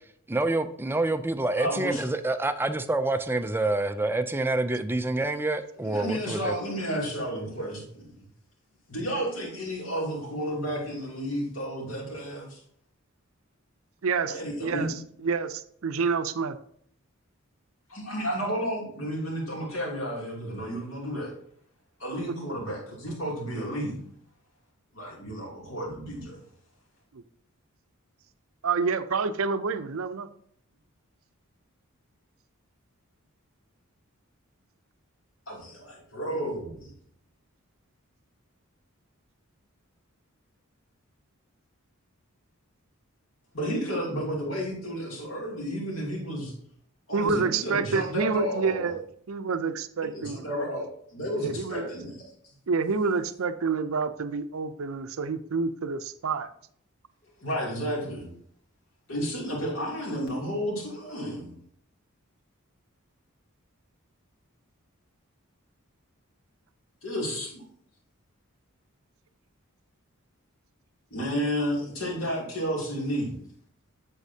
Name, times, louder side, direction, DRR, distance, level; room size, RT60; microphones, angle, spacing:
voice 1, 0.3-6.5, right 2 dB, 10° right, 0.4 m, -27 dB
voice 2, 1.5-2.1 5.8-8.3 8.9-12.6 14.3-14.9 17.9-21.3 22.0-24.0 24.9-26.4 35.5-36.9 43.5-46.5 47.1-48.9 50.1-52.6 57.4-58.3 59.1-61.6 67.0-67.6 71.1-73.3, equal, 65° left, 2.8 m, -32 dB
voice 3, 14.0-14.3 14.6-14.9 15.2-16.6 28.6-30.3 47.1-49.0 49.3-50.6 51.4-51.9 52.7-56.5, right 4 dB, 70° right, 0.6 m, -28 dB
8.1 x 7.2 x 2.8 m
head